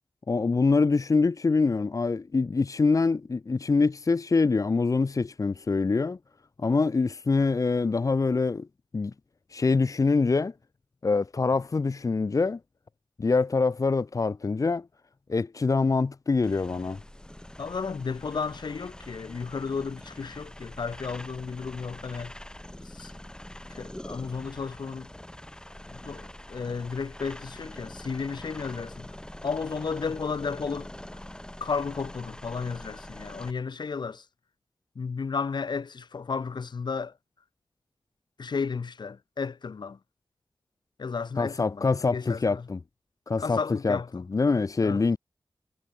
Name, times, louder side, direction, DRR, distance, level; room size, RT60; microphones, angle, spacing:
voice 1, 0.3-6.2 6.6-8.7 8.9-9.1 9.5-10.5 11.0-12.6 13.2-14.9 15.3-17.0 41.4-42.8 43.3-45.2, left 4 dB, 50° left, 1.1 m, -25 dB
sound 1, 16.4-33.5, left 1 dB, 10° left, 4.4 m, -44 dB
voice 2, 17.6-22.3 22.9-23.1 23.7-25.1 25.9-29.1 29.4-30.9 31.6-34.2 35.0-37.1 38.4-40.0 41.0-42.6 43.4-44.1 44.8-45.0, left 5 dB, 80° left, 2.9 m, -33 dB
wide cardioid pair, 105°, 7 cm